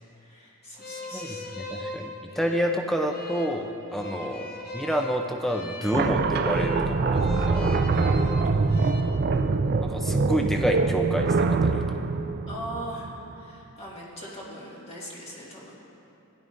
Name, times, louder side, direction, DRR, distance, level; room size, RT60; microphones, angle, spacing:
voice 1, 0.1-1.5 4.0-4.3 8.4-8.8 12.5-15.8, equal, 30° left, -6 dB, 2.0 m, -40 dB
sound 1, 0.8-9.0, left 1 dB, 45° left, 0.7 m, -40 dB
voice 2, 1.7-7.8 9.8-12.0, equal, ahead, 3 dB, 0.6 m, -29 dB
sound 2, 5.9-13.3, right 4 dB, 45° right, 0.4 m, -24 dB
16.0 x 10.5 x 2.6 m, 2.8 s
head